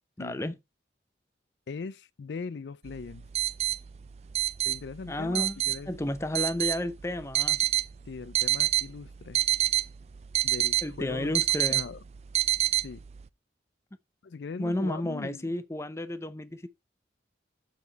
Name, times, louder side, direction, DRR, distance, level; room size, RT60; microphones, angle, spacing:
voice 1, 0.2-0.5 5.1-5.6 5.9-7.6 10.8-11.8 14.6-16.7, left 1 dB, 15° left, 0.6 m, -32 dB
voice 2, 1.7-3.3 4.7-5.9 8.1-9.4 10.4-11.3 11.7-12.0 12.8-13.0 14.2-15.5, left 4 dB, 70° left, 0.4 m, -40 dB
sound 1, 2.9-13.2, right 13 dB, 35° right, 0.3 m, -28 dB
7.2 x 6.0 x 4.0 m
head